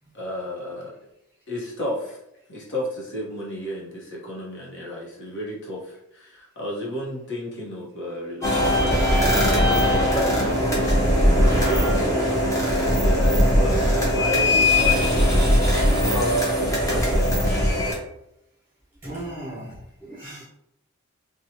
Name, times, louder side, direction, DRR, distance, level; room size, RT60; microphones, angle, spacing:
voice 1, 0.1-0.9 1.5-2.2 2.5-10.9 11.6-12.0 12.7-17.4 20.2-20.3, left 1 dB, 55° left, -4 dB, 0.9 m, -32 dB
sound 1, 8.4-17.9, left 1 dB, 15° left, 0.7 m, -20 dB
voice 2, 19.0-20.4, right 1 dB, 10° right, -11 dB, 1.2 m, -36 dB
3.0 x 2.3 x 2.7 m, 0.81 s
head